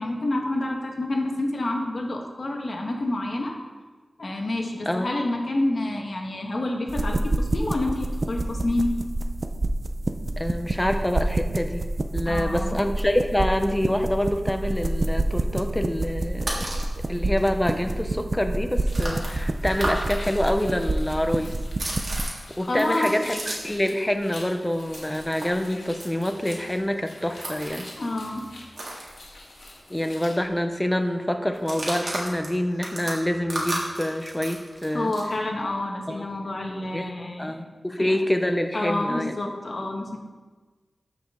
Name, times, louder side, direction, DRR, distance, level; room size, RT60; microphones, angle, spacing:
voice 1, 0.0-3.5 4.2-9.0 12.2-12.8 22.6-23.1 28.0-28.5 34.9-37.5 38.0-38.1 38.7-40.2, left 2 dB, 50° left, 0 dB, 1.4 m, -28 dB
sound 1, 6.9-22.2, right 2 dB, 40° right, 0.5 m, -28 dB
voice 2, 10.4-11.8 12.1-21.6 22.6-27.9 29.9-35.1 36.1-36.3 36.9-37.1 37.4-39.3, left 1 dB, 10° left, 6 dB, 0.7 m, -26 dB
sound 2, 16.2-16.9 17.4-17.5 17.7-20.2 20.4-23.9 24.1-29.8 30.0-30.2 30.4-30.8 31.5-35.3, right 1 dB, 55° right, 2.1 m, -35 dB
sound 3, 18.9-30.4, left 2 dB, 85° left, 1.6 m, -46 dB
13.0 x 5.1 x 3.8 m, 1.3 s
wide cardioid pair, 90°, 0 cm